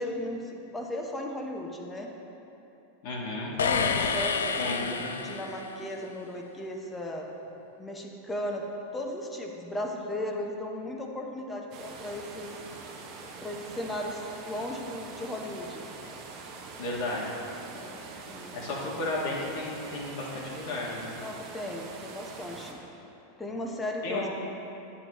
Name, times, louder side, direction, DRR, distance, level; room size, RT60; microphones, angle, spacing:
voice 1, 0.0-2.1 3.6-7.3 7.8-8.6 8.9-12.5 13.4-15.9 17.7-18.0 18.2-18.7 21.2-22.8 23.4-24.3, left 1 dB, 15° left, 1 dB, 0.9 m, -36 dB
voice 2, 3.0-3.6 4.6-5.3 16.8-17.3 18.5-21.2 24.0-24.3, left 2 dB, 60° left, -4 dB, 1.8 m, -33 dB
sound 1, 3.6-5.8, left 5 dB, 80° left, 0.4 m, -29 dB
sound 2, 11.7-22.7, right 4 dB, 50° right, 1.0 m, -44 dB
9.2 x 7.3 x 3.0 m, 2.9 s
hypercardioid pair, 95°, 0 cm